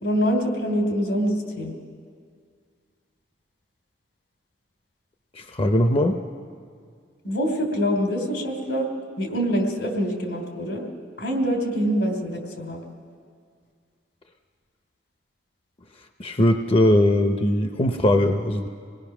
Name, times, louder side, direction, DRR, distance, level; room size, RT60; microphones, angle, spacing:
voice 1, 0.0-1.7 7.2-8.9 9.2-10.8 11.2-12.8, equal, 85° left, 3 dB, 3.0 m, -25 dB
voice 2, 5.3-6.2 16.2-18.7, left 1 dB, 30° left, 5 dB, 0.6 m, -20 dB
26.5 x 19.0 x 6.0 m, 2.1 s
head